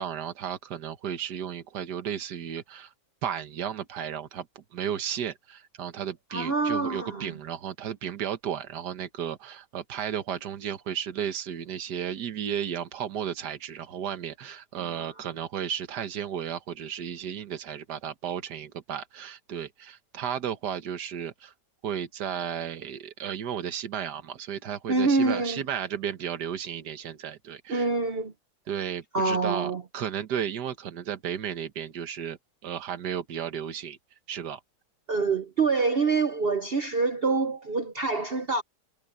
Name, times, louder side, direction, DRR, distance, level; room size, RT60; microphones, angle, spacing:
voice 1, 0.0-2.9 3.2-21.5 21.8-27.9 28.7-34.0 34.3-34.6, right 9 dB, 70° right, 1.8 m, -34 dB
voice 2, 6.3-7.3 14.8-15.1 24.9-25.6 27.7-28.3 29.1-29.8 35.1-38.6, right 3 dB, 45° right, 0.8 m, -26 dB
omnidirectional pair, 1.8 m